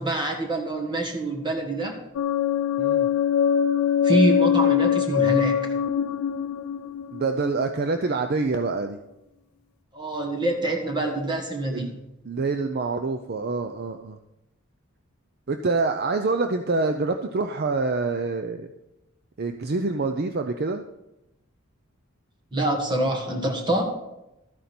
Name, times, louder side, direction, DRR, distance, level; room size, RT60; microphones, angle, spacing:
voice 1, 0.0-2.0 4.0-5.7 9.9-11.9 22.5-23.9, right 1 dB, 20° right, 2 dB, 1.8 m, -25 dB
sound 1, 2.2-8.0, left 8 dB, 80° left, 0.4 m, -23 dB
voice 2, 7.1-9.0 11.7-11.9 12.2-14.2 15.5-18.7 19.4-20.8, right 3 dB, 45° right, 6 dB, 0.6 m, -26 dB
13.0 x 9.2 x 4.4 m, 0.89 s
head